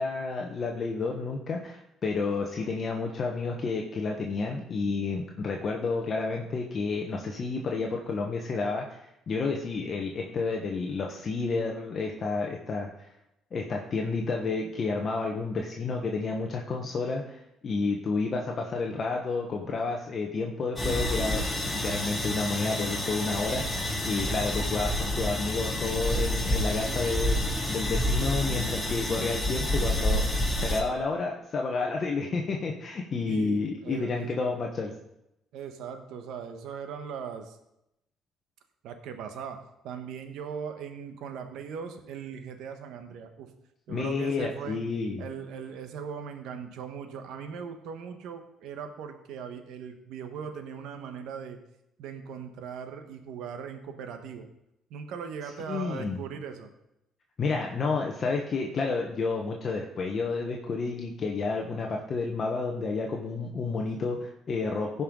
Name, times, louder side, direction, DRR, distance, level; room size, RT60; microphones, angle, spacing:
voice 1, 0.0-9.0 9.3-13.1 13.5-21.5 21.8-27.4 27.7-30.2 30.6-34.9 43.9-45.2 55.7-56.2 57.4-65.0, left 4 dB, 45° left, 1 dB, 1.2 m, -30 dB
sound 1, 20.8-30.8, left 1 dB, 10° left, 2.3 m, -29 dB
voice 2, 33.3-34.4 35.5-37.6 38.8-39.6 39.8-43.5 43.9-44.8 45.2-51.6 52.0-54.5 54.9-56.7, right 7 dB, 80° right, 6 dB, 1.2 m, -39 dB
16.0 x 5.5 x 3.8 m, 0.85 s
cardioid pair, 95°, 0 cm